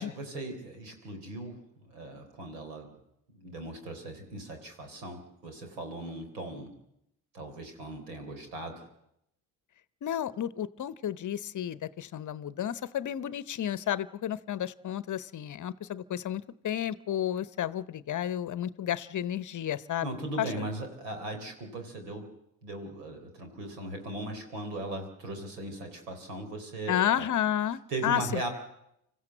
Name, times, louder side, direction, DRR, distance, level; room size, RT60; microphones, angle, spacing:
voice 1, 0.0-2.9 3.3-6.7 7.3-8.8 20.0-22.3 22.6-27.3 27.9-28.5, right 2 dB, 85° right, 5 dB, 3.9 m, -38 dB
voice 2, 10.0-20.7 26.9-28.4, left 10 dB, 40° left, 17 dB, 0.8 m, -32 dB
25.5 x 14.5 x 7.8 m, 0.80 s
hypercardioid pair, 60°, 47 cm